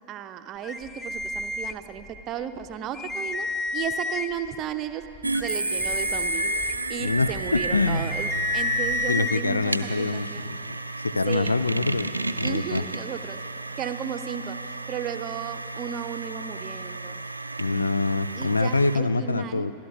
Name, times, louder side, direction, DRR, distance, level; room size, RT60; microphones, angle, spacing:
voice 1, 0.1-3.5 3.7-5.1 5.4-10.4 11.3-11.6 12.4-13.4 13.8-14.6 14.9-17.2 18.4-19.7, right 9 dB, 35° right, 10 dB, 0.6 m, -34 dB
sound 1, 0.6-2.2 2.6-2.7 2.9-4.5 5.0-9.4, left 3 dB, 20° left, 0.5 m, -31 dB
sound 2, 5.2-19.0, right 2 dB, 85° right, 0.4 m, -32 dB
voice 2, 7.0-8.1 9.1-10.6 11.0-12.1 12.4-12.8 17.6-19.7, left 3 dB, 80° left, 14 dB, 0.3 m, -25 dB
24.5 x 12.0 x 2.7 m, 2.6 s
figure-of-eight pair, 90°, 0 cm